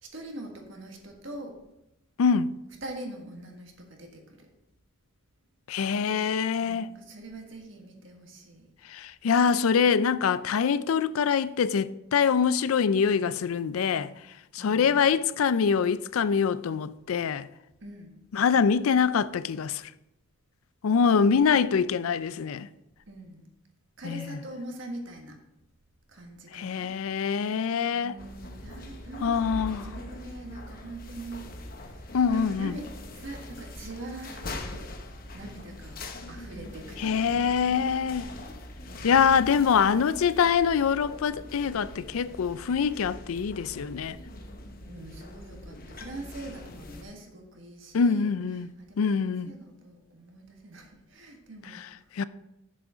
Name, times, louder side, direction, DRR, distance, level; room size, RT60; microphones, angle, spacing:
voice 1, 0.0-1.6 2.8-4.4 6.6-8.7 14.6-15.1 17.8-18.2 21.2-21.4 23.1-23.4 24.0-25.4 26.1-26.9 27.9-34.9 35.3-36.0 36.3-37.6 38.9-39.5 44.9-48.3 48.8-52.0, right 1 dB, 65° right, 1.6 m, -43 dB
voice 2, 2.2-2.5 5.7-6.9 8.9-14.1 14.5-17.5 18.3-19.8 20.8-22.7 24.0-24.4 26.5-28.2 29.2-29.9 32.1-32.8 37.0-38.3 39.0-44.2 47.9-48.7 49.0-49.5 51.7-51.9 52.2-52.3, left 6 dB, 85° left, 0.4 m, -24 dB
sound 1, 28.2-47.0, left 1 dB, 45° left, 0.9 m, -42 dB
7.3 x 7.2 x 5.0 m
head